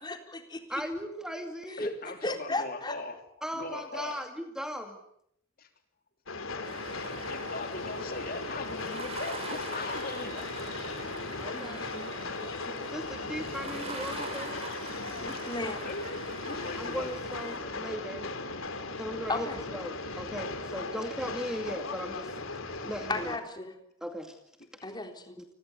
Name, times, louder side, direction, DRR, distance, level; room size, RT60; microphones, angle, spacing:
voice 1, 0.0-0.6 1.7-1.9 2.2-2.9 11.5-12.1 12.4-12.8 15.2-15.9 19.3-19.6 23.1-23.7 24.8-25.4, left 2 dB, 20° left, 5 dB, 3.9 m, -35 dB
voice 2, 0.7-1.8 3.4-5.0 11.4-11.9 12.9-14.6 14.9-15.1 16.8-18.3 19.0-22.3 22.8-23.4 24.0-24.3 25.4-25.5, equal, 5° right, 5 dB, 2.3 m, -38 dB
voice 3, 1.8-3.2 3.5-4.2 5.6-5.7 6.8-10.5 13.4-13.5 14.0-14.1 15.8-16.0 16.5-17.2 24.8-24.9, left 3 dB, 50° left, 6 dB, 3.2 m, -40 dB
Train, 6.3-23.4, left 3 dB, 90° left, 3.4 m, -37 dB
sound 1, 6.6-17.6, right 3 dB, 30° right, 6.6 m, -44 dB
29.5 x 21.5 x 8.3 m, 0.72 s
head